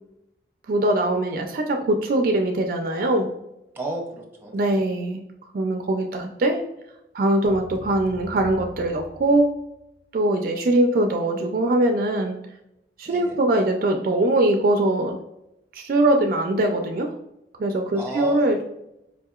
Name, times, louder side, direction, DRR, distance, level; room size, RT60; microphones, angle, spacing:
voice 1, 0.7-3.3 4.5-5.2 5.5-6.6 7.1-9.5 10.1-12.4 13.0-15.2 15.7-17.1 17.6-18.6, right 1 dB, 50° right, 4 dB, 0.3 m, -22 dB
voice 2, 3.7-4.9 13.0-13.4 17.9-18.6, right 2 dB, 15° right, -1 dB, 0.6 m, -33 dB
sound 1, 7.5-10.0, left 1 dB, 70° left, 0.6 m, -41 dB
4.8 x 2.7 x 2.3 m, 0.88 s
head